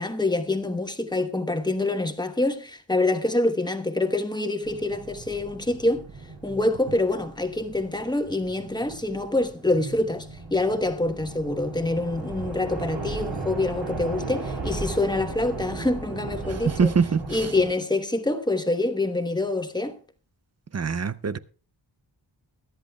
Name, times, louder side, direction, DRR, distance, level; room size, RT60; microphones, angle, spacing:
voice 1, 0.0-6.0 6.4-16.9 17.3-20.0, left 2 dB, 10° left, 1.1 m, -26 dB
sound 1, 4.6-17.7, right 3 dB, 65° right, 3.6 m, -36 dB
voice 2, 16.8-17.2 20.7-21.4, right 5 dB, 35° right, 0.4 m, -22 dB
22.0 x 10.5 x 2.3 m
wide cardioid pair, 115°, 46 cm